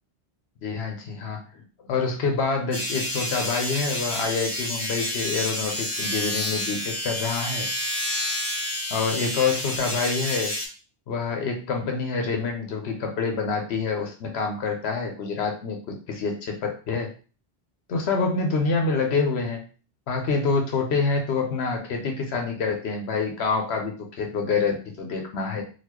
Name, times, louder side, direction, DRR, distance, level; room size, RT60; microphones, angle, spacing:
voice 1, 0.6-1.6 1.9-7.7 8.9-10.5 11.1-17.1 17.9-19.6 20.1-25.6, left 4 dB, 80° left, 3 dB, 0.9 m, -27 dB
sound 1, 2.7-10.7, left 1 dB, 25° left, 0.9 m, -29 dB
4.0 x 2.3 x 2.9 m, 0.37 s
omnidirectional pair, 1.1 m